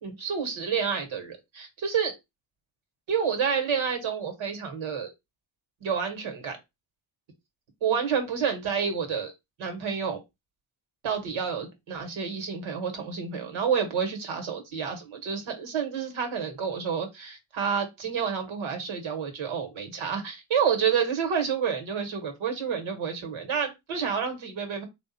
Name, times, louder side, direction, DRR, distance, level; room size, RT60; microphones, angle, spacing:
voice 1, 0.0-2.1 3.1-5.1 5.8-6.6 7.8-9.3 9.6-10.2 11.0-24.9, right 7 dB, 75° right, 1.5 m, -29 dB
3.6 x 2.5 x 4.1 m
cardioid pair, 70°, 48 cm